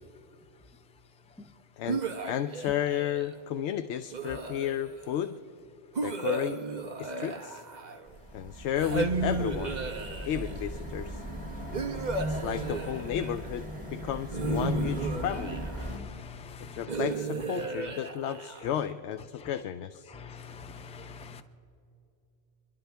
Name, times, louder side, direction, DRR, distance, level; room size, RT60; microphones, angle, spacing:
voice 1, 1.8-5.4 6.0-6.6 7.0-7.6 8.3-9.8 10.2-11.2 12.3-15.6 16.7-20.1, left 10 dB, 80° left, 11 dB, 0.9 m, -33 dB
sound 1, 1.9-3.4 4.1-5.0 5.9-8.1 8.8-10.6 11.7-13.5 14.3-16.0 16.9-18.8, right 3 dB, 45° right, 1.0 m, -34 dB
sound 2, 8.1-16.0, right 1 dB, 10° right, 3.3 m, -36 dB
voice 2, 15.8-16.9 19.4-19.5 20.1-21.4, left 5 dB, 10° left, 8 dB, 0.5 m, -45 dB
28.0 x 11.5 x 3.4 m, 2.7 s
omnidirectional pair, 1.1 m